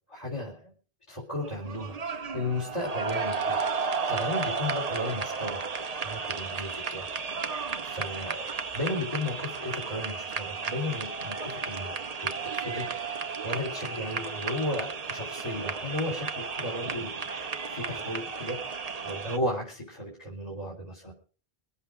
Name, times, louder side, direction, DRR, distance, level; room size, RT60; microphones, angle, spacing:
voice 1, 0.1-0.7 1.1-3.6 4.1-5.6 6.0-7.1 7.8-11.9 12.2-21.1, left 1 dB, 30° left, -3 dB, 3.6 m, -35 dB
sound 1, 1.4-19.4, right 5 dB, 40° right, 0.8 m, -33 dB
24.0 x 8.1 x 5.0 m, 0.40 s
omnidirectional pair, 1.1 m